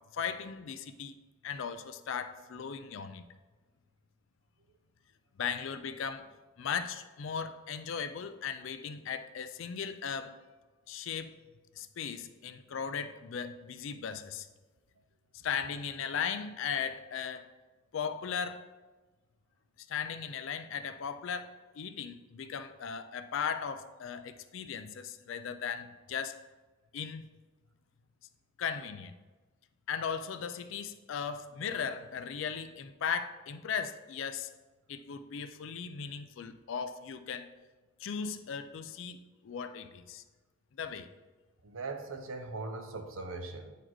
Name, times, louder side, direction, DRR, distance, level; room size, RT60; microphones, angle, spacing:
voice 1, 0.1-1.1 1.4-3.3 5.4-6.3 6.6-10.3 10.9-11.4 11.8-14.5 15.4-17.5 17.9-18.6 19.9-21.5 21.8-26.4 26.9-27.3 28.6-29.1 29.9-34.5 34.9-37.5 38.0-40.2 40.8-41.1, left 7 dB, 65° left, 10 dB, 0.4 m, -37 dB
voice 2, 41.6-43.7, right 3 dB, 75° right, 7 dB, 0.7 m, -40 dB
9.0 x 4.1 x 3.0 m, 1.3 s
head